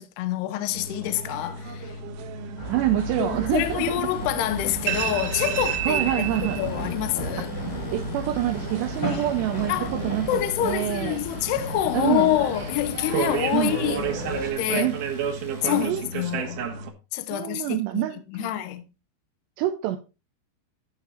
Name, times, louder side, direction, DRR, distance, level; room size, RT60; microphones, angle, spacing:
voice 1, 0.0-2.0 3.2-7.5 9.7-9.9 10.3-14.1 14.6-14.9 15.6-16.6 17.1-18.8, left 13 dB, 80° left, 2.5 m, -27 dB
sound 1, 0.7-16.9, right 6 dB, 65° right, 2.6 m, -32 dB
sound 2, 2.6-14.5, equal, 25° left, 2.6 m, -34 dB
voice 2, 2.7-4.1 5.9-6.6 7.9-10.3 10.6-11.2 11.9-12.4 13.5-13.7 14.7-15.0 15.7-16.1 17.3-18.5 19.6-20.0, right 14 dB, 85° right, 2.4 m, -26 dB
Domestic sounds home sounds, 3.5-15.8, left 2 dB, 55° left, 6.9 m, -52 dB
14.5 x 6.5 x 2.9 m
omnidirectional pair, 5.6 m